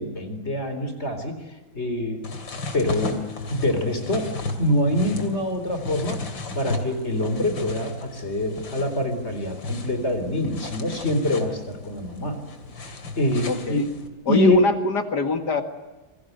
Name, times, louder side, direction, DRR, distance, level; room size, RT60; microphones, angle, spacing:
voice 1, 0.0-1.4 1.7-2.2 2.7-3.2 3.5-4.3 4.6-6.2 6.5-12.4 12.8-13.8 14.3-14.7, left 1 dB, 35° left, 8 dB, 4.2 m, -25 dB
sound 1, 2.2-14.1, left 2 dB, 75° left, 3.5 m, -35 dB
voice 2, 13.5-13.9 14.3-15.6, left 2 dB, 55° left, 7 dB, 2.4 m, -24 dB
28.5 x 23.0 x 8.0 m, 1.1 s
omnidirectional pair, 2.1 m